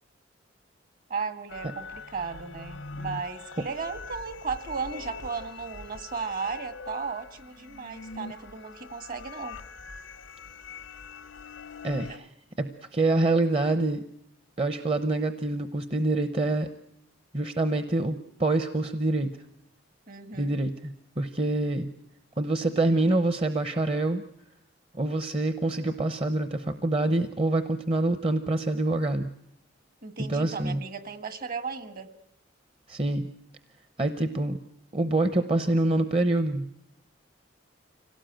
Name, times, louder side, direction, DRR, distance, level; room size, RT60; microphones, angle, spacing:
voice 1, 1.1-9.6 12.1-12.3 20.1-20.6 30.0-32.1, right 5 dB, 50° right, 11 dB, 1.7 m, -35 dB
sound 1, 1.5-12.2, left 4 dB, 90° left, 0.9 m, -43 dB
voice 2, 11.8-12.3 12.6-14.0 14.6-16.7 17.3-19.3 20.3-21.9 22.4-24.2 24.9-29.3 30.3-30.8 32.9-33.3 34.0-34.6 34.9-36.7, right 2 dB, 30° right, 10 dB, 0.9 m, -26 dB
26.0 x 18.0 x 9.0 m, 0.76 s
head